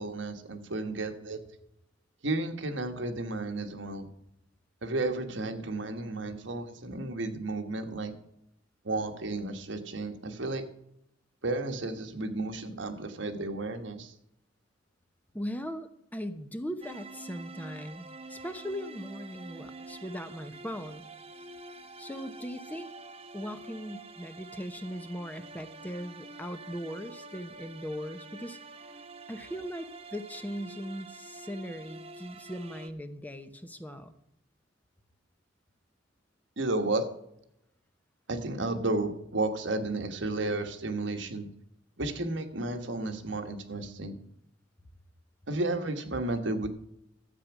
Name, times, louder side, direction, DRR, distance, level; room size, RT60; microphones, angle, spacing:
voice 1, 0.0-1.4 2.2-4.1 4.8-8.1 8.8-10.6 11.4-14.1 36.6-37.1 38.3-41.5 42.0-44.2 45.5-46.7, right 2 dB, 75° right, 6 dB, 1.4 m, -32 dB
voice 2, 15.3-21.1 22.0-22.9 23.3-28.6 29.3-34.2, equal, 10° left, 9 dB, 0.8 m, -39 dB
sound 1, 16.8-32.9, right 3 dB, 30° right, 0.9 m, -47 dB
13.0 x 8.0 x 6.1 m, 0.78 s
head